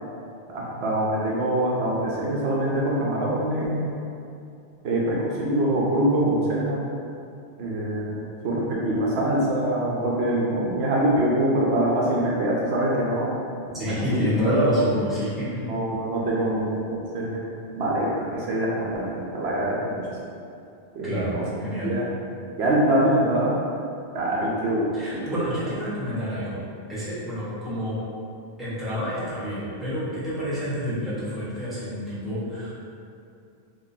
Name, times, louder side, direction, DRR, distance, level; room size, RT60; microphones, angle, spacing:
voice 1, 0.5-3.9 4.8-6.8 7.6-13.3 13.8-14.3 15.7-17.4 17.7-20.2 20.9-21.4 21.8-22.1 22.6-23.6 24.1-25.4, right 1 dB, 75° right, -5 dB, 0.9 m, -24 dB
voice 2, 13.7-15.6 21.0-21.3 21.6-21.9 24.9-26.6 26.9-28.0 28.6-32.7, equal, ahead, -11 dB, 1.0 m, -27 dB
3.7 x 2.8 x 2.7 m, 2.6 s
omnidirectional pair, 1.1 m